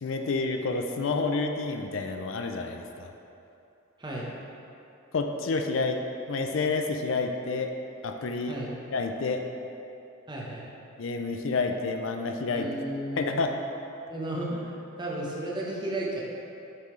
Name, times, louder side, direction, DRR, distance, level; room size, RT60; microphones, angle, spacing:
voice 1, 0.0-3.1 5.1-6.0 6.3-7.7 8.0-8.5 8.9-9.4 11.0-12.7 13.2-13.5, left 3 dB, 70° left, 4 dB, 0.5 m, -29 dB
voice 2, 4.0-4.3 8.5-8.7 10.3-10.7 12.5-13.4 14.1-16.2, right 1 dB, 20° right, -4 dB, 1.0 m, -34 dB
7.6 x 5.6 x 3.2 m, 2.8 s
head